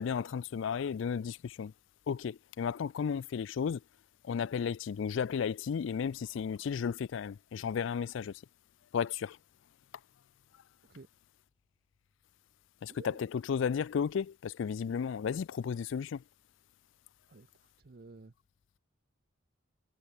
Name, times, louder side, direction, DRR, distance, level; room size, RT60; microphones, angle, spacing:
voice 1, 0.0-1.7 2.1-3.8 4.2-8.4 8.9-9.4 12.8-16.2, left 6 dB, 65° left, 0.3 m, -33 dB
voice 2, 12.9-13.3 17.3-18.3, right 3 dB, 45° right, 0.6 m, -53 dB
head